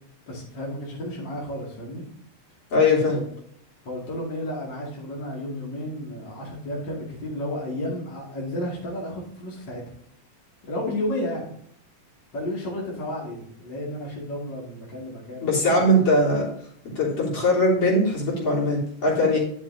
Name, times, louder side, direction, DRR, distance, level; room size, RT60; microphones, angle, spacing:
voice 1, 0.3-2.0 3.1-3.2 3.8-9.8 10.6-11.5 12.3-16.0, left 1 dB, 40° left, -6 dB, 2.9 m, -32 dB
voice 2, 2.7-3.2 15.4-16.5 17.0-19.4, left 1 dB, 55° left, -4 dB, 4.3 m, -20 dB
11.0 x 6.9 x 2.8 m, 0.63 s
omnidirectional pair, 3.4 m